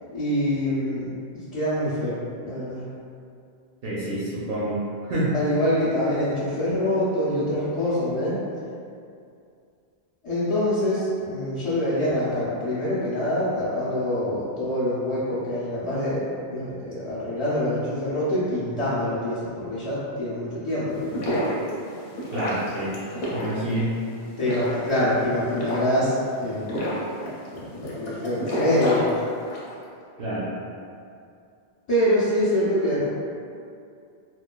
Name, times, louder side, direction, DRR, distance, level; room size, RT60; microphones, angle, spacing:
voice 1, 0.1-1.1 1.3-2.9 5.3-8.4 10.2-21.4 24.4-26.7 27.5-29.1 31.9-33.1, left 1 dB, 45° left, -13 dB, 0.4 m, -25 dB
voice 2, 3.8-4.8 5.1-5.3 22.3-22.9 23.3-23.9 30.2-30.5, right 1 dB, 65° right, -8 dB, 0.7 m, -27 dB
sound 1, 20.9-29.7, equal, 65° left, 0.8 m, -30 dB
2.9 x 2.2 x 2.2 m, 2.4 s
omnidirectional pair, 1.1 m